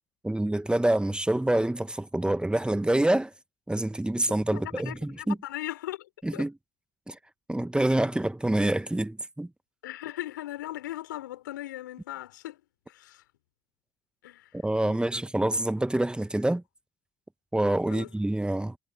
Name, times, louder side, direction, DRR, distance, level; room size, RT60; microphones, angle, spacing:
voice 1, 0.2-3.3 3.7-5.4 6.2-6.5 7.1-7.2 7.5-9.5 14.6-16.6 17.5-18.8, right 1 dB, 10° right, 1.3 m, -26 dB
voice 2, 4.5-6.4 9.8-12.6 12.9-13.2 14.2-14.6 14.8-15.0 17.9-18.1, left 15 dB, 90° left, 4.3 m, -38 dB
hypercardioid pair, 55°, 10 cm